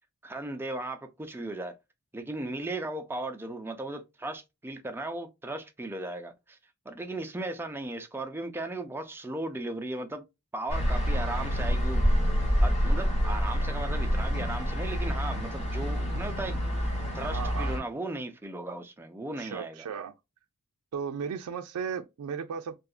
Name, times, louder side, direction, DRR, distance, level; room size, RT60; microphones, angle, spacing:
voice 1, 0.2-1.8 2.1-6.6 6.9-10.2 10.5-12.0 12.6-19.9, right 2 dB, 10° right, 0.4 m, -36 dB
sound 1, 10.7-17.8, equal, 30° left, 0.9 m, -27 dB
voice 2, 17.3-17.7 19.4-20.1 20.9-22.8, right 6 dB, 80° right, 0.3 m, -35 dB
2.7 x 2.4 x 2.3 m
head